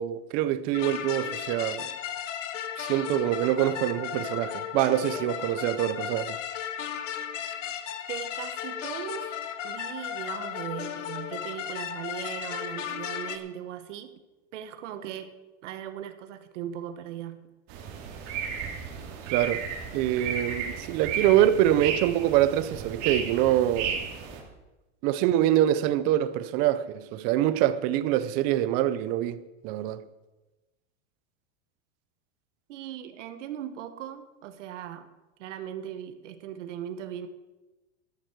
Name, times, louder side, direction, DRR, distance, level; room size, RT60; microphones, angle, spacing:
voice 1, 0.0-2.0 2.8-6.4 19.3-19.6 19.9-24.0 25.0-30.1, right 12 dB, 25° right, 0.3 m, -25 dB
sound 1, 0.7-13.4, left 9 dB, 85° left, 1.3 m, -35 dB
voice 2, 8.1-9.4 9.6-14.1 14.5-15.3 15.6-17.4 32.7-35.1 35.4-37.3, right 10 dB, 80° right, 1.3 m, -38 dB
sound 2, 17.7-24.4, right 6 dB, 45° right, 2.6 m, -34 dB
13.5 x 11.0 x 4.6 m
supercardioid pair, 160°, 36 cm